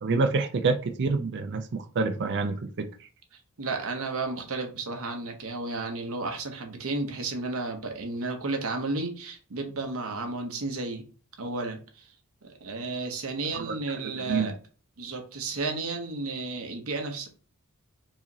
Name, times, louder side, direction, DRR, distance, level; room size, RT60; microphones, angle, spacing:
voice 1, 0.0-2.9 13.5-13.7 14.0-14.5, right 4 dB, 55° right, 0.4 m, -27 dB
voice 2, 3.6-11.1 11.4-12.1 12.4-14.5 15.0-17.3, right 3 dB, 70° right, 0.9 m, -33 dB
4.6 x 3.0 x 2.8 m
head